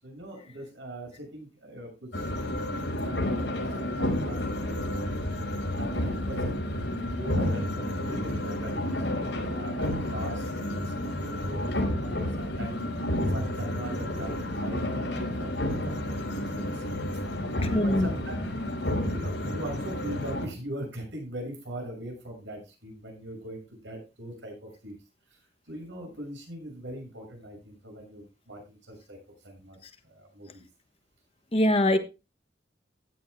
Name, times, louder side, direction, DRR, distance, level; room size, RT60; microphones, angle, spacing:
voice 1, 0.0-5.3 5.7-6.6 7.0-12.8 13.3-16.8 17.1-17.2 17.5-18.4 18.7-18.8 19.1-25.0 25.3-25.4 25.7-29.2 29.4-30.6, right 1 dB, 90° right, 2 dB, 6.6 m, -41 dB
sound 1, 2.1-20.4, left 1 dB, 90° left, 4.9 m, -30 dB
voice 2, 17.7-18.1 31.5-32.0, left 1 dB, 30° left, 8 dB, 1.1 m, -22 dB
16.0 x 11.0 x 2.2 m, 0.28 s
head